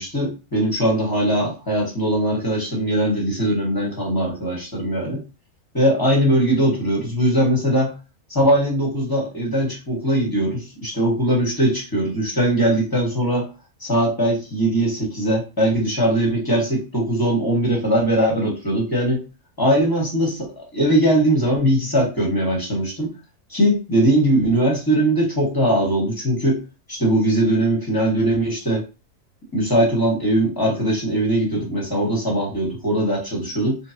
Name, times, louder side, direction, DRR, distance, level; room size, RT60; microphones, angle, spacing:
voice 1, 0.0-5.2 5.7-7.9 8.3-13.5 13.8-19.2 19.6-23.1 23.5-26.6 26.9-28.8 29.5-33.8, right 1 dB, 15° left, -2 dB, 1.4 m, -20 dB
3.8 x 3.4 x 2.9 m, 0.30 s
omnidirectional pair, 1.6 m